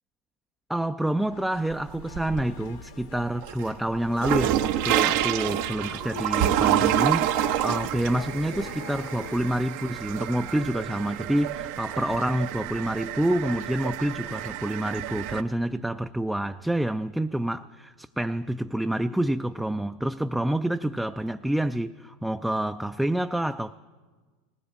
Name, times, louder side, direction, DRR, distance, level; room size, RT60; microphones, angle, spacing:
voice 1, 0.7-23.8, right 1 dB, 5° right, 0.4 m, -28 dB
sound 1, 1.2-9.5, left 7 dB, 70° left, 1.3 m, -43 dB
sound 2, 1.7-2.7 3.1-15.4, right 12 dB, 65° right, 0.7 m, -28 dB
19.5 x 18.0 x 4.1 m
hypercardioid pair, 90°, 0 cm